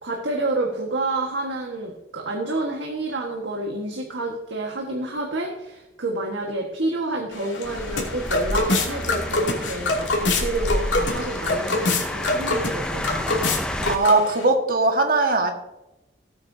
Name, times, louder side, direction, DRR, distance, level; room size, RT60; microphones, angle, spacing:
voice 1, 0.0-13.5, right 2 dB, 85° right, 0 dB, 1.5 m, -29 dB
sound 1, 7.3-14.4, left 2 dB, 85° left, 2.7 m, -25 dB
sound 2, 7.6-14.0, equal, 5° left, 0.6 m, -30 dB
voice 2, 13.9-15.5, right 3 dB, 50° right, 4 dB, 1.7 m, -19 dB
17.5 x 8.8 x 2.8 m, 0.95 s
head